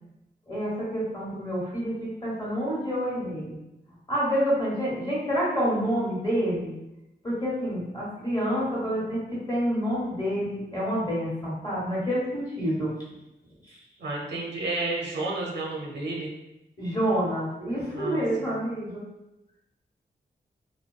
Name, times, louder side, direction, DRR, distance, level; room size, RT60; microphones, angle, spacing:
voice 1, 0.5-3.5 4.1-6.7 7.2-9.2 9.5-12.9 16.8-19.0, equal, 25° left, -8 dB, 1.1 m, -28 dB
voice 2, 14.0-16.3 17.9-18.6, right 2 dB, 90° right, -1 dB, 0.6 m, -31 dB
2.6 x 2.2 x 2.3 m, 0.93 s
wide cardioid pair, 125°, 18 cm